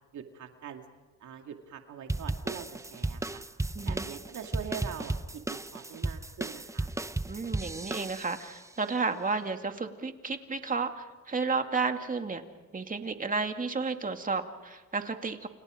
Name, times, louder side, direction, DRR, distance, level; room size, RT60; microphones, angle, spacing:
voice 1, 0.1-0.8 1.2-3.4 3.8-6.9, right 8 dB, 70° right, 4 dB, 2.4 m, -43 dB
sound 1, 2.1-8.6, right 2 dB, 10° right, 0.7 m, -35 dB
voice 2, 3.7-4.1 7.3-12.4 12.7-15.5, right 4 dB, 25° right, 5 dB, 2.4 m, -32 dB
29.5 x 28.5 x 5.1 m, 1.2 s
cardioid pair, 90°, 30 cm